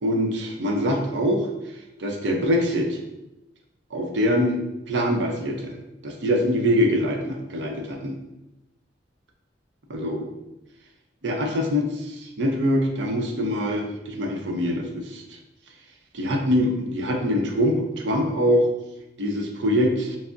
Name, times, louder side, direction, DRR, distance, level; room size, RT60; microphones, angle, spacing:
voice 1, 0.0-1.5 2.0-3.0 3.9-4.6 4.9-5.7 6.0-8.1 9.9-10.3 11.2-15.2 16.1-18.7 19.2-20.2, equal, 80° right, 1 dB, 0.6 m, -24 dB
5.7 x 2.0 x 2.5 m, 0.94 s
head